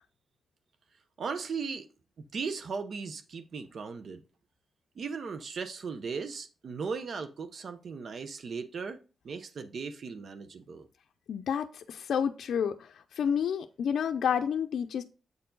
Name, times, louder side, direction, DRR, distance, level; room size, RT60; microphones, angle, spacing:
voice 1, 1.2-1.9 2.3-4.2 5.0-9.0 9.2-10.9, right 5 dB, 65° right, 0.7 m, -37 dB
voice 2, 11.3-15.0, left 7 dB, 80° left, 0.4 m, -30 dB
8.2 x 4.6 x 3.8 m
cardioid pair, 85°, 0 cm